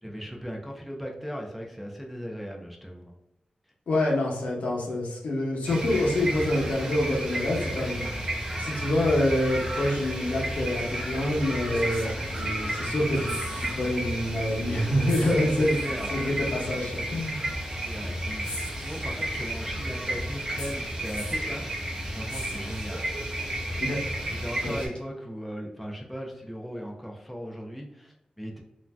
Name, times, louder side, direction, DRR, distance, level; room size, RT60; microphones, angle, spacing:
voice 1, 0.0-3.1 15.3-16.3 17.8-23.1 24.4-28.6, equal, ahead, 0 dB, 0.4 m, -38 dB
voice 2, 3.9-8.0 8.5-15.8 16.1-17.5 23.8-24.0 24.6-24.7, left 1 dB, 90° left, -2 dB, 0.7 m, -26 dB
sound 1, 5.6-24.9, right 1 dB, 25° right, 0.8 m, -32 dB
sound 2, 10.8-10.9 11.7-12.8 13.0-13.9 14.2-14.3 15.1-15.9 17.0-17.1 18.4-19.5 20.6-21.5 22.3-23.2 25.0-25.1, equal, 55° left, 1.1 m, -41 dB
2.5 x 2.1 x 3.3 m, 0.88 s
wide cardioid pair, 180°, 2 cm